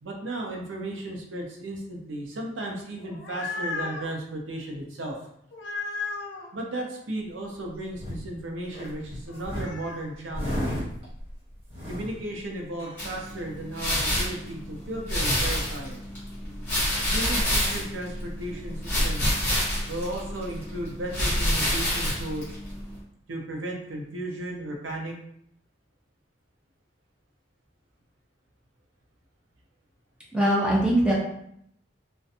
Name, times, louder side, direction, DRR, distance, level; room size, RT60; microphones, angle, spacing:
voice 1, 0.0-5.2 6.5-10.8 11.9-16.0 17.1-19.3 19.9-22.5 23.3-25.2, right 1 dB, 85° right, 0 dB, 0.5 m, -35 dB
sound 1, 2.9-4.1 5.5-6.5 9.3-10.0, left 4 dB, 70° left, 0.4 m, -35 dB
sound 2, 7.4-8.3 8.7-13.4 13.8-13.9 14.2-14.6 14.9-15.0 15.2-16.0 16.9-17.0, equal, 50° right, 1.2 m, -35 dB
sound 3, 13.0-23.0, equal, 10° left, 1.3 m, -28 dB
voice 2, 30.3-31.1, right 1 dB, 5° right, -4 dB, 0.5 m, -21 dB
2.4 x 2.1 x 2.7 m, 0.72 s
head